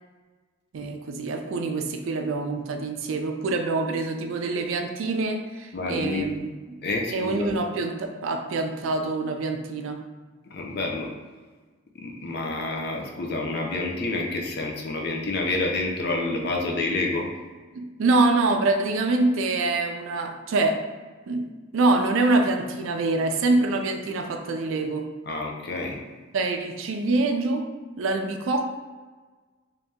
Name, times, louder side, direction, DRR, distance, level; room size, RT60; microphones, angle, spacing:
voice 1, 0.7-6.5 7.1-10.0 17.7-20.8 21.3-21.5 21.7-25.1 26.3-27.7 28.0-28.6, right 3 dB, 75° right, 4 dB, 0.4 m, -25 dB
voice 2, 5.7-6.3 6.8-7.5 10.5-11.1 11.9-17.3 25.3-26.0, left 2 dB, 50° left, 0 dB, 0.6 m, -28 dB
3.0 x 2.8 x 3.5 m, 1.4 s
head